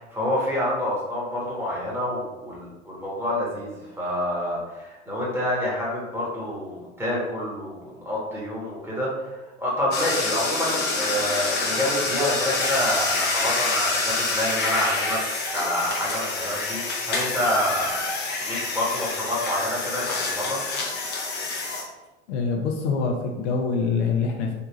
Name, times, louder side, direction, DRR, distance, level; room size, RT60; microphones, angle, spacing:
voice 1, 0.0-15.2 15.5-18.0 18.4-20.8, equal, 5° right, -6 dB, 1.1 m, -27 dB
sound 1, 9.9-21.8, left 3 dB, 25° left, 0.7 m, -27 dB
voice 2, 22.3-24.5, left 4 dB, 60° left, 1 dB, 0.6 m, -25 dB
3.7 x 2.3 x 3.0 m, 1.1 s
hypercardioid pair, 90°, 39 cm